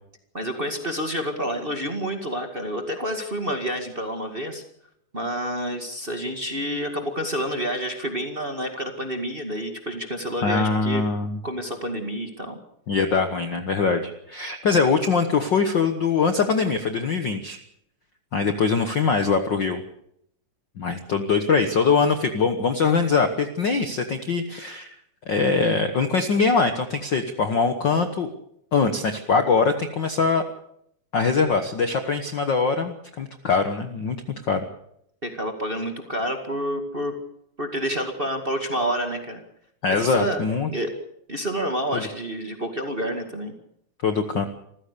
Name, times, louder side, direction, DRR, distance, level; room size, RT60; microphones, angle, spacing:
voice 1, 0.3-4.6 5.1-11.0 11.4-12.6 35.2-37.1 37.6-39.4 39.9-40.9 41.3-43.5, equal, 20° right, 4 dB, 1.8 m, -29 dB
voice 2, 10.4-11.4 12.9-17.6 18.3-19.8 20.8-24.9 25.3-28.3 28.7-30.4 31.1-34.2 34.5-34.7 39.8-40.7 41.9-42.1 44.0-44.5, left 4 dB, 50° left, 7 dB, 1.4 m, -22 dB
27.0 x 15.0 x 6.8 m, 0.73 s
omnidirectional pair, 3.5 m